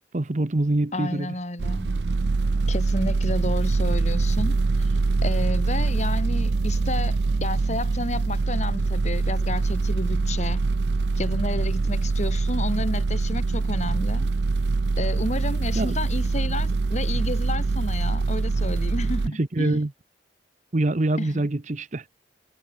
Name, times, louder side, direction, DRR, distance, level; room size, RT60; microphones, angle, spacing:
voice 1, 0.1-1.3 15.8-15.9 19.4-19.9 20.7-22.0, right 2 dB, 45° right, 0.9 m, -24 dB
voice 2, 0.9-1.9 2.7-10.7 11.2-14.3 15.0-19.8 21.2-21.5, left 2 dB, 40° left, 3.6 m, -31 dB
sound 1, 1.6-19.3, right 3 dB, 70° right, 0.6 m, -24 dB
head